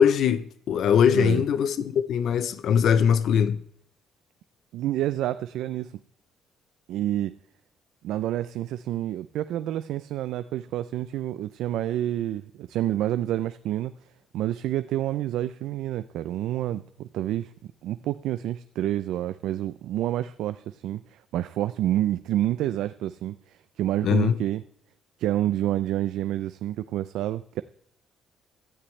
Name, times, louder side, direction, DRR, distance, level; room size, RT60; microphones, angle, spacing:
voice 1, 0.0-3.6 24.0-24.4, left 8 dB, 55° left, 0.6 m, -21 dB
voice 2, 1.1-1.4 4.7-5.9 6.9-7.3 8.0-13.9 14.3-17.5 17.8-24.6 25.2-27.6, right 13 dB, 75° right, 0.5 m, -28 dB
17.0 x 13.0 x 3.2 m
cardioid pair, 175°, 0 cm